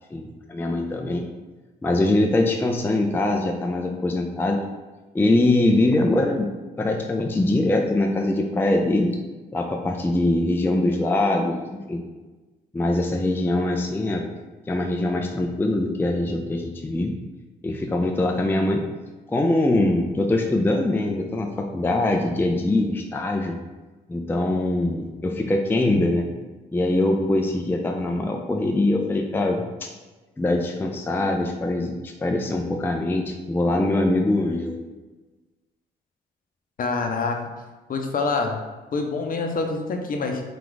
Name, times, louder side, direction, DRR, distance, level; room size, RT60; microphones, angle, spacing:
voice 1, 0.1-1.2 1.8-4.6 5.1-6.5 6.8-9.1 9.5-12.0 12.7-14.3 14.7-17.2 17.6-18.8 19.3-23.6 24.1-26.3 26.7-29.9 30.4-34.8, left 2 dB, 10° left, 3 dB, 0.4 m, -23 dB
voice 2, 36.8-37.4 37.9-38.6 38.9-40.4, left 4 dB, 50° left, 3 dB, 0.7 m, -26 dB
4.4 x 2.5 x 3.9 m, 1.2 s
cardioid pair, 75°, 19 cm